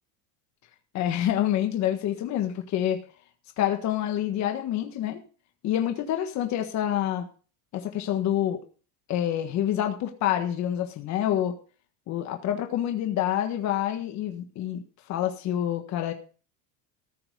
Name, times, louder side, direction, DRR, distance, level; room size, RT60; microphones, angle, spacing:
voice 1, 0.9-3.0 3.6-5.2 5.6-7.3 7.7-8.6 9.1-11.5 12.1-14.8 15.1-16.1, left 11 dB, 45° left, 5 dB, 1.5 m, -27 dB
14.5 x 5.9 x 6.6 m, 0.38 s
cardioid pair, 155°, 39 cm